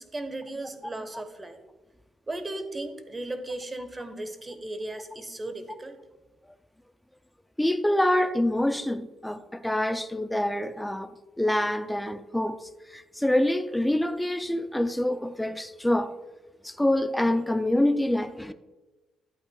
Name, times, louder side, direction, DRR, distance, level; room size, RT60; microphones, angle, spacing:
voice 1, 0.0-1.6 2.3-6.0, right 2 dB, 25° right, 1.1 m, -36 dB
voice 2, 7.6-16.1 16.6-18.5, left 1 dB, 5° left, 0.4 m, -26 dB
11.5 x 8.5 x 2.3 m
cardioid pair, 90°, 0 cm